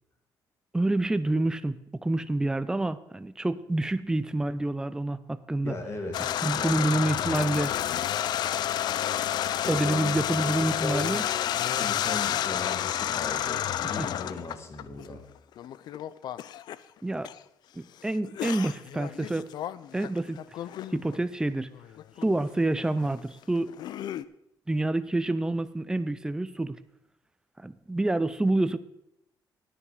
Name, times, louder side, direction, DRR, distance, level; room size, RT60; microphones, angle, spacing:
voice 1, 0.7-1.8 2.0-5.7 6.4-7.7 9.7-11.2 14.0-14.1 17.0-17.3 17.8-19.5 19.9-20.4 20.9-21.7 22.2-23.7 24.7-26.8 27.6-28.8, right 2 dB, 10° right, 13 dB, 0.5 m, -27 dB
voice 2, 5.6-7.0 9.6-11.1 11.7-15.3, left 2 dB, 35° left, 6 dB, 1.7 m, -38 dB
sound 1, 6.1-15.1 15.6-16.8 17.2-17.4 18.2-21.2 21.7-22.4 22.6-24.2, left 11 dB, 65° left, 0.4 m, -30 dB
9.8 x 9.8 x 4.9 m, 0.80 s
cardioid pair, 125°, 8 cm